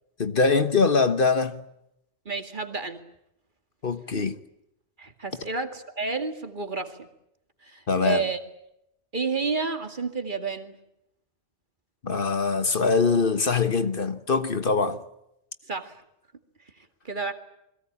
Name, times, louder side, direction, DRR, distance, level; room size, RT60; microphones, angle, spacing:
voice 1, 0.2-1.6 3.8-4.4 7.9-8.3 12.0-15.0, left 4 dB, 50° left, 1.4 m, -23 dB
voice 2, 2.3-3.0 5.0-7.1 7.6-8.4 9.1-10.8 15.7-15.9 17.0-17.3, right 4 dB, 45° right, 2.3 m, -30 dB
29.0 x 21.5 x 8.6 m
omnidirectional pair, 1.2 m